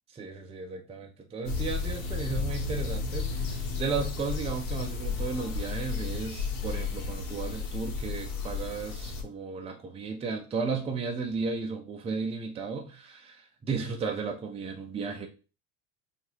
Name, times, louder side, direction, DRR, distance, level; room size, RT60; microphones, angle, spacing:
voice 1, 0.1-15.3, right 5 dB, 20° right, 0.6 m, -34 dB
sound 1, 1.4-9.2, left 4 dB, 80° left, 1.0 m, -33 dB
4.5 x 2.5 x 2.9 m
supercardioid pair, 115°, 32 cm